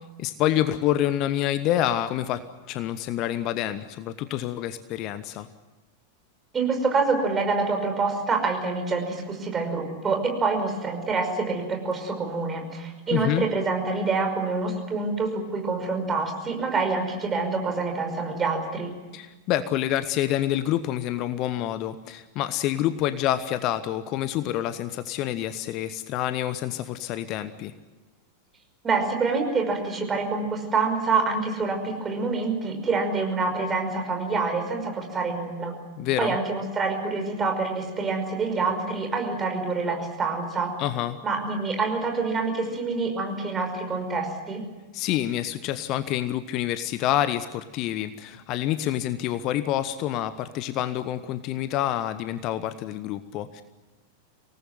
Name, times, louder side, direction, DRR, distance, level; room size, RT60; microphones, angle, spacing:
voice 1, 0.2-5.5 13.1-13.5 19.1-27.7 36.0-36.4 40.8-41.2 44.9-53.6, left 12 dB, 40° left, 13 dB, 1.1 m, -27 dB
voice 2, 6.5-18.9 28.8-35.7 36.2-40.7 41.2-44.6, right 4 dB, 20° right, 4 dB, 5.6 m, -26 dB
25.5 x 19.0 x 9.4 m, 1.2 s
figure-of-eight pair, 90°, 0 cm